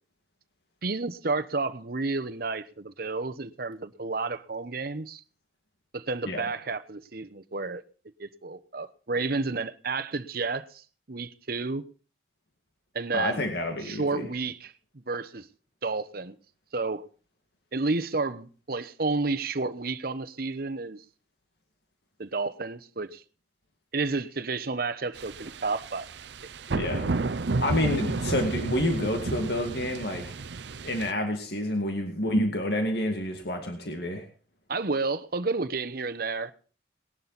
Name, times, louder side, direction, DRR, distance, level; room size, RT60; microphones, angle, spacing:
voice 1, 0.8-5.2 5.9-7.8 8.2-11.9 12.9-13.5 13.8-15.5 15.8-16.4 16.7-17.0 17.7-21.0 22.2-23.2 23.9-26.1 34.7-36.5, right 3 dB, 55° right, 1.0 m, -31 dB
voice 2, 13.1-14.3 26.7-27.1 27.6-30.3 30.8-34.2, left 1 dB, 60° left, 2.1 m, -28 dB
sound 1, 25.2-31.1, right 3 dB, 70° right, 0.7 m, -32 dB
19.5 x 11.5 x 4.1 m
head